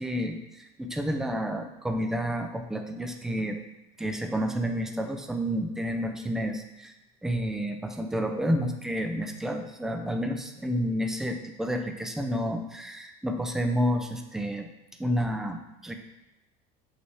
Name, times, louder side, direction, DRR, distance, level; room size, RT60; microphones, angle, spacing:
voice 1, 0.0-3.6 4.0-6.9 7.2-14.7 15.0-15.9, equal, 5° right, 4 dB, 0.4 m, -30 dB
8.2 x 5.8 x 3.3 m, 0.94 s
cardioid pair, 170°, 18 cm